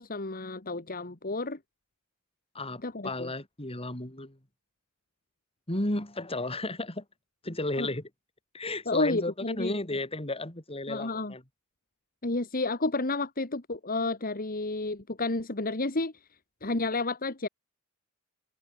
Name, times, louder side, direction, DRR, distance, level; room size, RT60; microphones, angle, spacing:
voice 1, 0.0-1.6 2.8-3.3 7.8-7.9 8.9-9.8 10.9-11.3 12.2-16.1 16.6-17.5, left 2 dB, 40° left, 2.0 m, -31 dB
voice 2, 2.5-4.4 5.7-7.0 7.4-8.1 8.5-11.4, left 2 dB, 25° left, 4.0 m, -33 dB
head